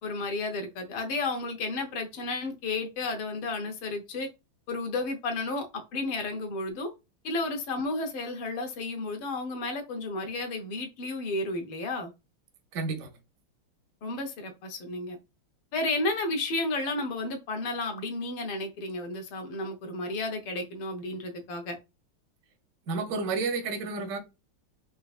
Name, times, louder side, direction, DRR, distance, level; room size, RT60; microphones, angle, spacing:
voice 1, 0.0-4.3 4.7-6.9 7.2-12.1 14.0-15.2 15.7-21.8, left 2 dB, 80° left, 1.6 m, -32 dB
voice 2, 12.7-13.1 22.9-24.2, right 4 dB, 70° right, 0.8 m, -30 dB
4.5 x 2.5 x 2.3 m
omnidirectional pair, 2.3 m